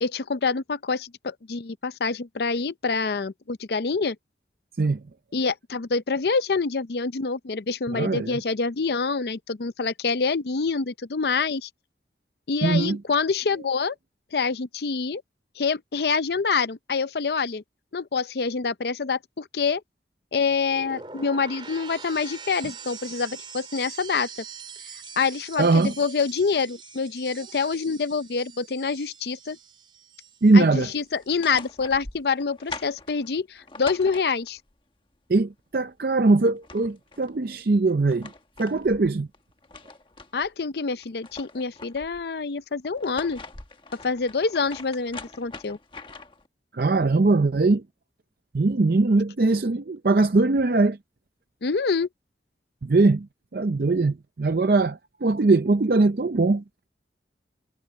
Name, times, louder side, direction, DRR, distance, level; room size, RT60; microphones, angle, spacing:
voice 1, 0.0-4.2 5.3-11.7 12.5-13.9 14.3-15.2 15.6-17.6 17.9-19.8 20.3-24.3 25.2-29.6 30.5-34.6 40.3-43.4 44.0-45.8 51.6-52.1, left 4 dB, 70° left, 0.6 m, -26 dB
voice 2, 7.9-8.4 12.6-13.0 25.6-25.9 30.4-30.9 35.3-38.3 38.6-39.3 46.7-47.8 48.5-51.0 52.8-53.3 53.5-56.9, right 3 dB, 55° right, 0.5 m, -21 dB
sound 1, 20.5-30.6 30.9-31.3, right 6 dB, 30° right, 3.4 m, -43 dB
sound 2, 31.2-34.7 36.2-36.3 36.5-37.3 37.9-40.5 40.9-42.2 42.8-46.5, left 3 dB, 30° left, 1.3 m, -43 dB
head